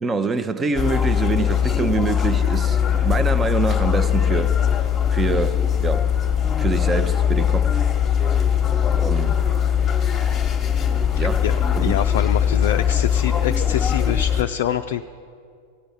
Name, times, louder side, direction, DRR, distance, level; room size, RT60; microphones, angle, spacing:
voice 1, 0.0-4.6 5.1-6.2 6.6-7.8 9.0-9.4 11.2-11.4 11.7-12.0, right 3 dB, 15° right, 0.7 m, -25 dB
sound 1, 0.7-14.4, left 8 dB, 20° left, 1.2 m, -20 dB
voice 2, 11.1-15.0, left 10 dB, 55° left, 0.4 m, -26 dB
15.0 x 8.9 x 8.0 m
figure-of-eight pair, 90°, 0 cm